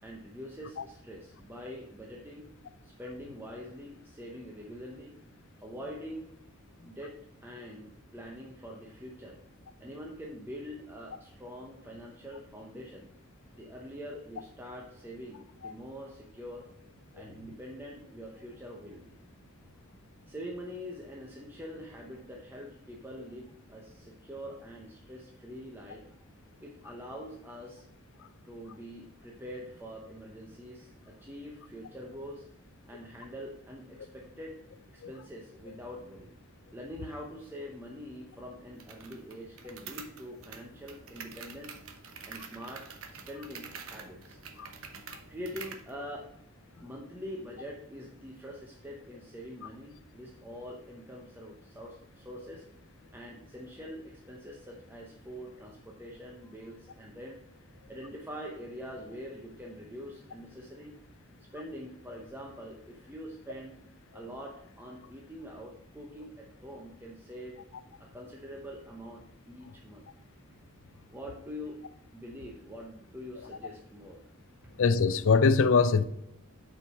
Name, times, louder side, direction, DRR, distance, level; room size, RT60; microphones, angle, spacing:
voice 1, 0.0-2.5 2.8-5.2 5.6-6.3 6.8-9.4 9.8-13.1 13.5-16.7 17.1-19.1 20.3-26.1 26.6-27.8 28.4-32.5 32.9-34.6 34.9-36.3 36.7-41.8 42.3-44.4 45.3-46.3 46.6-52.6 53.1-57.4 57.9-61.0 61.4-63.8 64.1-67.6 68.0-70.1 71.1-71.8 72.1-74.3, equal, 10° right, 0.8 m, -44 dB
sound 1, 38.8-45.9, right 6 dB, 65° right, 0.9 m, -47 dB
voice 2, 74.8-76.0, left 5 dB, 65° left, 0.5 m, -22 dB
8.6 x 4.7 x 4.2 m
head